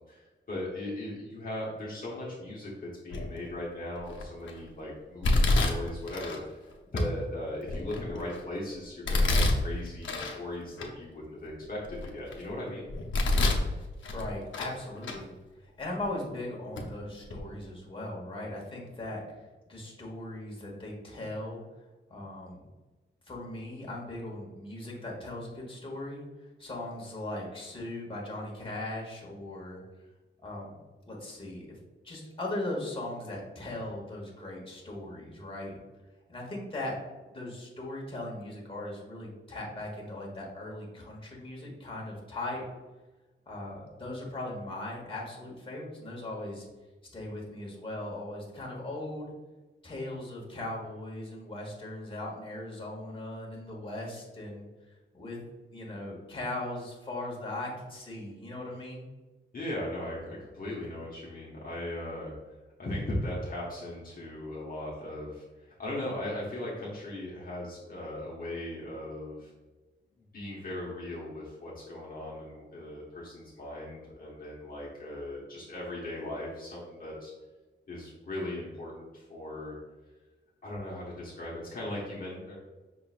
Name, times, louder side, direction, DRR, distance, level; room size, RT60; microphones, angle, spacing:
voice 1, 0.1-6.6 6.9-12.9 59.5-62.3 62.8-69.5 70.3-77.3 77.9-79.8 80.6-82.6, left 1 dB, 45° left, -5 dB, 1.0 m, -38 dB
Domestic sounds home sounds, 3.1-3.5 4.1-4.5 5.2-6.4 7.0-7.1 7.6-8.4 9.1-10.4 10.8-10.9 11.5-12.4 12.9-13.7 14.0-14.8 15.0-15.2 16.0-16.1 16.8-16.9 17.2-17.4, left 2 dB, 70° left, 0.8 m, -27 dB
voice 2, 14.1-15.3 15.6-21.6 22.1-22.6 23.3-29.8 30.4-30.8 31.0-31.8 32.0-35.8 36.3-37.0 37.3-42.6 43.5-46.7 47.1-49.3 49.8-54.7 55.1-55.4 55.7-59.1, left 1 dB, 25° left, -3 dB, 1.2 m, -39 dB
5.6 x 3.7 x 2.4 m, 1.2 s
wide cardioid pair, 135°, 20 cm